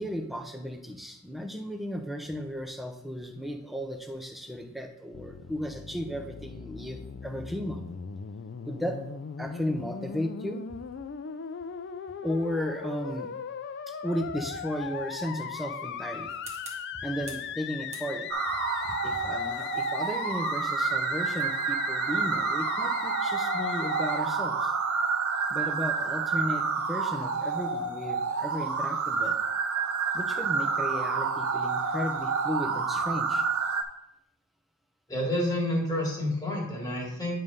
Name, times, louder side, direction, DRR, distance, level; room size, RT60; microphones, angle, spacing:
voice 1, 0.0-7.9 8.6-9.0 9.4-10.6 12.2-13.3 14.0-16.3 17.0-18.3 19.0-24.7 25.5-29.4 30.1-33.4, equal, ahead, 4 dB, 0.6 m, -35 dB
Musical instrument, 5.1-24.2, left 7 dB, 50° left, 0.4 m, -38 dB
Typewriter Typing, 16.3-17.5 17.9-18.5 19.2-24.0, right 3 dB, 30° right, 1.3 m, -50 dB
sound 1, 18.3-33.8, right 5 dB, 70° right, 0.7 m, -29 dB
voice 2, 35.1-37.4, left 1 dB, 15° left, -2 dB, 1.7 m, -29 dB
9.0 x 3.3 x 5.4 m, 0.78 s
head